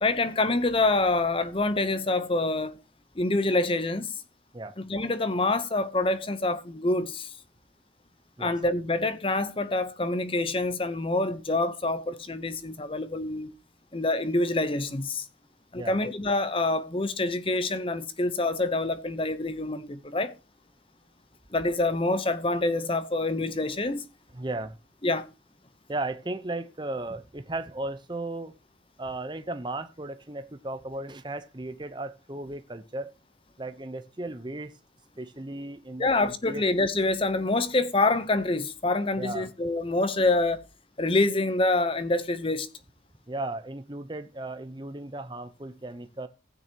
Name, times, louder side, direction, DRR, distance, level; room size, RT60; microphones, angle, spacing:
voice 1, 0.0-2.8 3.2-4.2 4.8-7.4 8.4-13.5 13.9-15.3 15.7-20.3 21.5-24.0 25.0-25.3 36.0-40.7 41.0-42.7, left 2 dB, 25° left, 0.8 m, -26 dB
voice 2, 24.3-24.8 25.9-28.5 29.0-33.1 33.6-34.8 35.2-36.6 39.2-39.5 43.3-46.3, right 2 dB, 25° right, 0.8 m, -35 dB
15.5 x 9.5 x 2.9 m
head